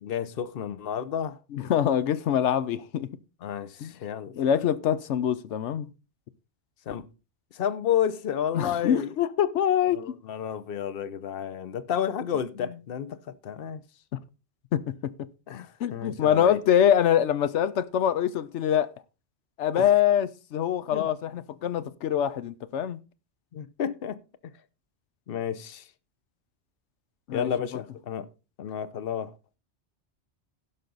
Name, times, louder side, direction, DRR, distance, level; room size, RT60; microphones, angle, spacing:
voice 1, 0.0-1.4 3.4-4.3 6.9-7.1 7.5-9.2 9.9-13.8 15.5-16.6 19.7-19.9 20.9-21.1 23.5-24.2 25.3-25.9 27.3-28.3 28.6-29.3, left 9 dB, 60° left, 1.0 m, -31 dB
voice 2, 1.5-3.1 3.8-3.9 4.4-5.9 8.5-10.0 14.7-15.1 15.8-18.9 19.6-23.0 27.3-27.5, left 9 dB, 90° left, 1.0 m, -24 dB
16.5 x 5.7 x 3.9 m
omnidirectional pair, 1.2 m